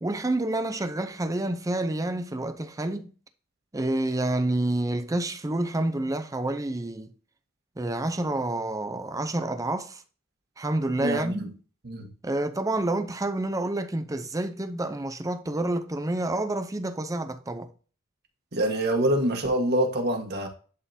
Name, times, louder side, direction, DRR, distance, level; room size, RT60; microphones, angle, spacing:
voice 1, 0.0-3.1 3.7-7.1 7.8-10.0 10.6-11.5 12.2-17.7, right 1 dB, 15° right, 0.6 m, -28 dB
voice 2, 11.0-11.5 11.8-12.1 18.5-20.5, right 1 dB, 50° right, 1.4 m, -25 dB
11.0 x 3.8 x 2.7 m
head